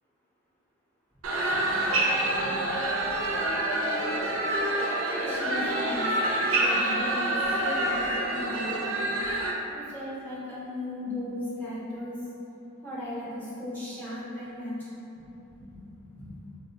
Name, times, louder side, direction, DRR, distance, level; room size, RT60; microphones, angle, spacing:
sound 1, 1.2-9.5, right 1 dB, 75° right, 0.4 m, -27 dB
voice 1, 1.3-2.8 3.1-3.2 3.9-4.0 5.1-6.1 6.6-9.1 9.7-12.2 12.8-15.3 15.6-16.4, left 1 dB, 10° left, -10 dB, 0.6 m, -38 dB
4.1 x 2.1 x 2.8 m, 2.9 s
head